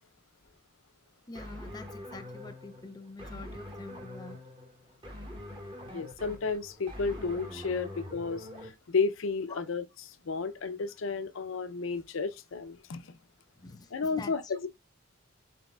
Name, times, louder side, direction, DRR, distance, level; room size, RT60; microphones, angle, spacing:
voice 1, 1.3-4.5 9.5-9.6 13.6-14.5, left 3 dB, 20° left, 0.4 m, -46 dB
sound 1, 1.3-8.7, left 1 dB, 25° right, 1.0 m, -44 dB
voice 2, 5.9-8.5 8.9-9.8 10.3-13.0 13.9-14.7, left 4 dB, 75° left, 0.5 m, -32 dB
4.1 x 4.0 x 2.3 m
head